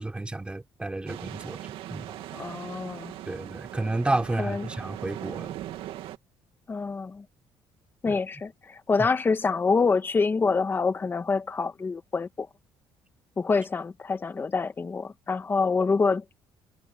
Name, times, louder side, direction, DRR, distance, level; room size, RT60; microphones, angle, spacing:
voice 1, 0.0-1.6 1.9-2.2 3.3-5.6 8.1-8.2, right 2 dB, 10° right, 3.8 m, -31 dB
sound 1, 1.1-6.2, right 13 dB, 80° right, 2.2 m, -40 dB
voice 2, 2.3-3.1 4.4-4.7 6.7-7.2 8.0-12.5 13.4-16.2, left 4 dB, 25° left, 1.5 m, -26 dB
cardioid pair, 140°, 9 cm